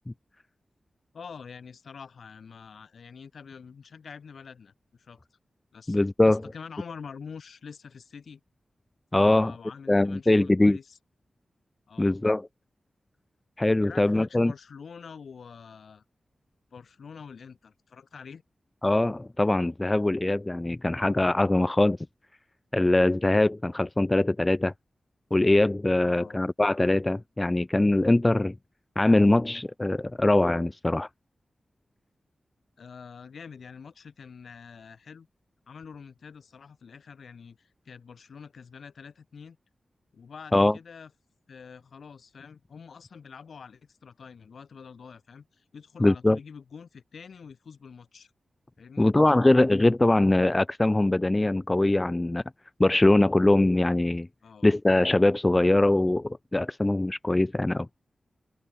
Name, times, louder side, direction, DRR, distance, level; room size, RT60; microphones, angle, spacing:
voice 1, 1.1-5.2 5.7-6.0 6.2-8.4 9.2-11.0 11.9-12.2 13.8-16.0 16.7-18.4 26.0-26.4 32.8-35.3 35.7-39.6 40.1-41.1 41.5-48.3 48.8-49.1 54.4-54.7, left 6 dB, 75° left, 7.7 m, -46 dB
voice 2, 5.9-6.4 9.1-9.5 9.9-10.8 12.0-12.5 13.6-14.5 18.8-22.0 22.7-24.7 25.3-28.5 29.0-31.1 40.5-40.8 46.0-46.4 49.0-52.4 52.8-54.3 54.6-57.9, left 2 dB, 15° left, 0.7 m, -22 dB
wide cardioid pair, 150°, 0 cm